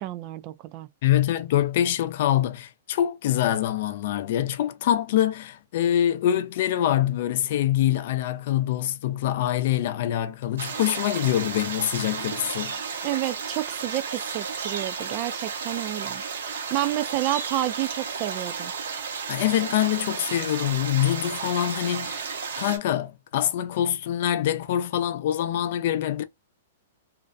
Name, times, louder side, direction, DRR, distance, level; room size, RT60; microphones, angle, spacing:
voice 1, 0.0-0.9 13.0-18.7, right 14 dB, 35° right, 0.3 m, -30 dB
voice 2, 1.0-12.8 19.3-22.3 22.6-26.2, left 12 dB, 55° left, 0.4 m, -25 dB
sound 1, 10.6-22.8, right 5 dB, 85° right, 0.8 m, -33 dB
2.5 x 2.1 x 2.4 m
hypercardioid pair, 145°, 0 cm